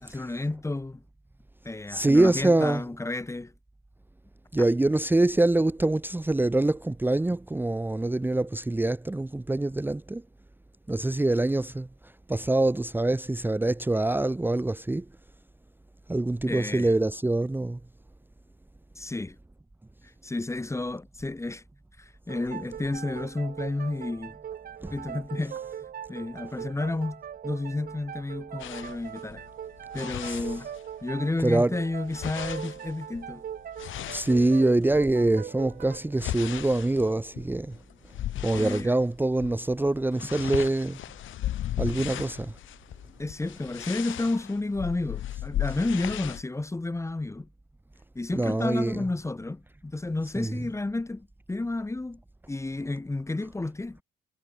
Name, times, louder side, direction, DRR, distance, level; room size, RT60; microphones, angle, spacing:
voice 1, 0.0-1.0 1.6-3.5 16.5-16.9 18.9-19.4 20.2-21.6 22.0-24.3 24.9-25.6 26.1-29.4 29.9-30.7 31.0-33.4 38.5-38.9 43.2-47.5 48.1-52.2 52.5-54.0, left 2 dB, 15° left, 1.4 m, -31 dB
voice 2, 1.9-2.9 4.5-10.2 10.9-11.9 12.3-15.1 16.1-17.8 24.8-25.0 30.2-30.5 31.4-31.7 34.1-37.8 38.4-41.0 41.8-42.5 48.3-49.1 50.2-50.6, right 2 dB, 10° right, 0.9 m, -25 dB
sound 1, 22.3-37.6, right 9 dB, 50° right, 0.8 m, -41 dB
sound 2, 28.6-31.1 31.4-35.0 35.6-38.9 39.3-39.6 39.9-46.4, left 13 dB, 80° left, 2.3 m, -36 dB
cardioid pair, 90°, 20 cm